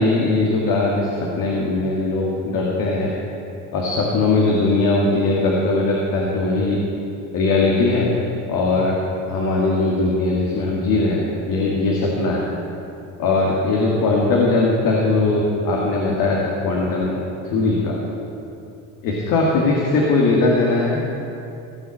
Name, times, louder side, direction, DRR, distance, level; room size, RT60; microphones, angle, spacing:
voice 1, 0.0-3.1 3.7-6.8 7.3-8.1 8.5-9.0 9.3-12.4 13.2-17.2 17.5-18.0 19.0-21.0, left 3 dB, 70° left, -3 dB, 2.2 m, -20 dB
17.5 x 6.1 x 7.9 m, 2.7 s
supercardioid pair, 90°, 35 cm